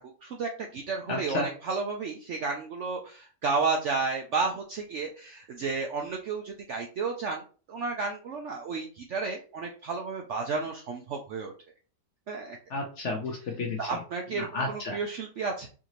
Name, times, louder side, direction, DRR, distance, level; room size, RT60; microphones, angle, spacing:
voice 1, 0.2-7.4 7.7-11.5 12.3-12.6 13.8-15.7, right 4 dB, 70° right, 2 dB, 0.7 m, -32 dB
voice 2, 1.1-1.5 12.7-13.8 14.4-15.0, left 2 dB, 60° left, 3 dB, 0.8 m, -32 dB
4.7 x 2.7 x 3.0 m, 0.38 s
omnidirectional pair, 1.8 m